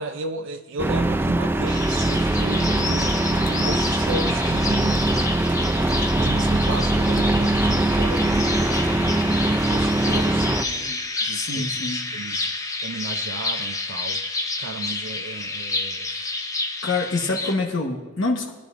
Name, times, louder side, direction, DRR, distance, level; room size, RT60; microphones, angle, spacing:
voice 1, 0.0-5.1 6.0-10.9 11.3-16.1, right 3 dB, 70° right, 6 dB, 0.5 m, -34 dB
sound 1, 0.8-10.6, right 1 dB, 10° right, 0.4 m, -22 dB
sound 2, 1.7-17.5, left 3 dB, 15° left, 0.7 m, -29 dB
voice 2, 10.8-12.3 16.1-16.3 16.8-18.5, left 3 dB, 70° left, 1 dB, 1.2 m, -27 dB
20.5 x 11.0 x 2.5 m, 1.2 s
head